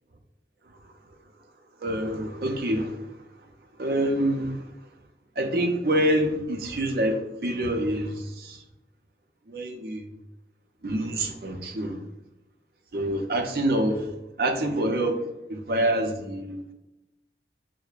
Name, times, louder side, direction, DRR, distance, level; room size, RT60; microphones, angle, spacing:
voice 1, 1.8-3.2 3.8-4.6 5.4-8.6 9.5-10.0 10.8-12.0 12.9-14.1 14.4-15.2 15.5-16.7, right 1 dB, 55° right, 0.5 m, -26 dB
6.2 x 2.1 x 2.3 m
head